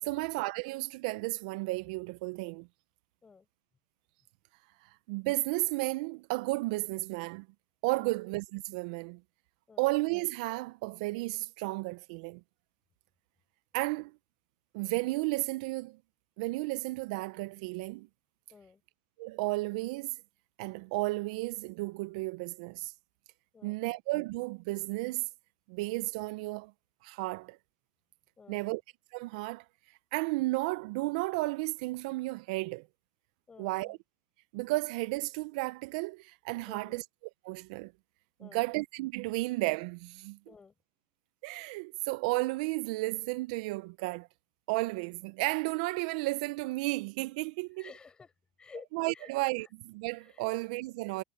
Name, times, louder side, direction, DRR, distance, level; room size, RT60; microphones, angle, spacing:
voice 1, 0.0-2.7 5.1-7.5 7.8-9.2 9.8-12.4 13.7-14.1 14.7-16.0 16.4-18.1 19.2-20.2 20.6-22.9 23.6-25.3 25.7-26.7 27.0-27.6 28.5-28.8 29.1-29.6 30.1-32.9 33.6-34.0 34.5-37.0 37.4-37.9 38.4-40.4 41.4-44.3 44.7-47.9 48.9-51.2, right 23 dB, 70° right, 0.5 m, -33 dB
voice 2, 18.5-18.8 23.5-24.0 28.4-28.8 33.5-34.0 36.7-37.0 38.4-38.7 40.5-40.7 47.8-48.3 48.6-48.9 49.1-49.3 49.6-49.7 50.2-50.4, left 5 dB, 20° left, 6.9 m, -53 dB
supercardioid pair, 105°, 4 cm